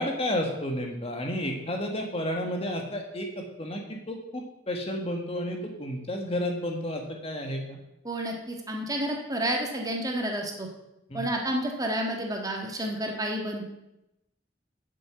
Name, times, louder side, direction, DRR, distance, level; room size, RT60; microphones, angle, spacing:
voice 1, 0.0-7.8 11.1-11.2, left 1 dB, 30° left, 2 dB, 1.4 m, -31 dB
voice 2, 8.0-10.7 11.1-13.7, right 1 dB, 20° right, 1 dB, 1.6 m, -30 dB
7.6 x 7.5 x 7.8 m, 0.90 s
head